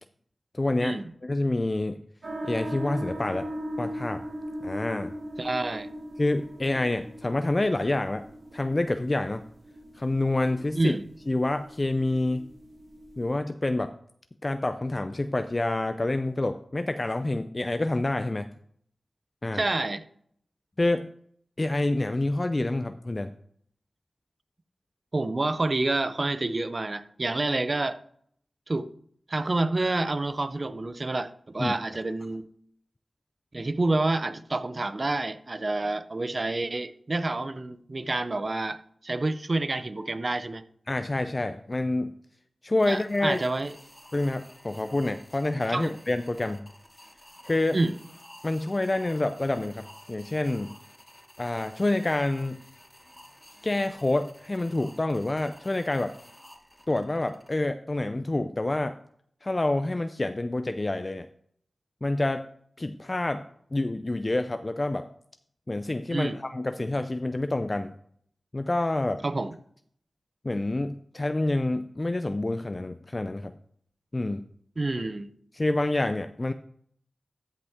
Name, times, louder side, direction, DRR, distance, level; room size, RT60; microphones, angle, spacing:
voice 1, 0.5-2.0 2.4-3.5 3.8-4.2 4.6-5.1 6.2-8.2 8.5-9.4 9.9-11.0 11.3-12.5 13.2-13.9 14.4-18.5 19.4-19.6 20.8-21.1 21.6-23.3 31.6-31.7 40.9-42.1 42.6-43.4 44.1-46.7 47.4-47.8 48.4-50.7 51.4-52.6 53.6-56.1 56.9-59.0 59.4-61.3 62.0-62.5 62.8-63.4 63.7-65.1 65.7-67.9 68.5-69.2 70.4-73.5 74.1-74.4 75.5-76.5, left 2 dB, 35° left, 9 dB, 0.5 m, -27 dB
sound 1, 2.2-13.4, equal, 75° right, 1.6 m, -39 dB
voice 2, 5.4-5.9 10.7-11.0 19.5-20.0 25.1-28.0 28.7-28.9 29.3-32.5 33.5-38.8 39.0-40.6 42.9-43.7 45.7-45.9 47.7-47.9 66.1-66.4 69.2-69.6 74.8-75.3, right 2 dB, 45° right, 13 dB, 0.7 m, -28 dB
sound 2, 42.8-57.5, left 1 dB, 10° left, 2.1 m, -52 dB
13.5 x 5.5 x 3.6 m, 0.63 s
cardioid pair, 45°, 0 cm